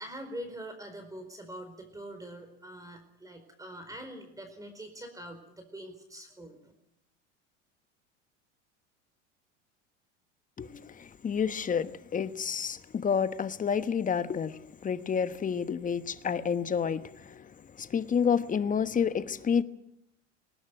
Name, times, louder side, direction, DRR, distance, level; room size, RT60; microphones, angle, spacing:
voice 1, 0.0-6.7, right 1 dB, 10° right, 4.6 m, -44 dB
voice 2, 10.6-17.5 17.8-19.6, left 7 dB, 20° left, 1.2 m, -29 dB
20.0 x 18.5 x 9.0 m
hypercardioid pair, 85°, 35 cm